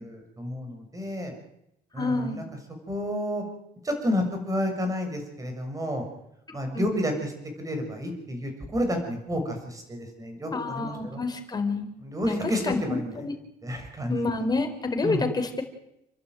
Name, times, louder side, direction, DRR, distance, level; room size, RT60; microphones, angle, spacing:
voice 1, 0.0-1.3 1.9-2.4 2.9-3.4 3.8-6.0 6.5-7.3 7.6-11.2 12.0-13.1 13.6-14.2 15.0-15.2, left 1 dB, 20° right, 4 dB, 6.8 m, -30 dB
voice 2, 2.0-2.4 6.7-7.0 10.5-11.9 12.3-12.4 12.6-13.4 14.1-15.6, left 3 dB, 25° left, 5 dB, 4.4 m, -28 dB
29.5 x 11.5 x 9.4 m, 0.82 s
cardioid pair, 110°, 17 cm